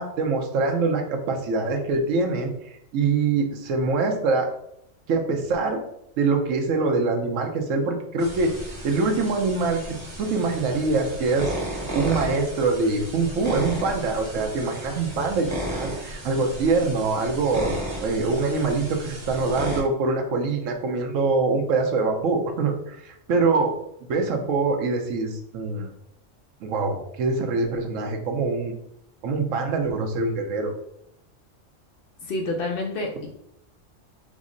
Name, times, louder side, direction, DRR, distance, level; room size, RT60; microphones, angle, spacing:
voice 1, 0.0-2.5 2.9-4.5 5.1-5.8 6.2-8.5 8.8-17.7 18.0-23.7 24.1-25.9 26.6-28.7 29.2-30.7, right 3 dB, 85° right, 3 dB, 1.0 m, -24 dB
sound 1, 8.2-19.8, right 1 dB, 25° right, 0.8 m, -34 dB
voice 2, 32.2-33.3, left 2 dB, 60° left, 1 dB, 0.6 m, -28 dB
3.6 x 2.0 x 3.7 m, 0.76 s
omnidirectional pair, 1.3 m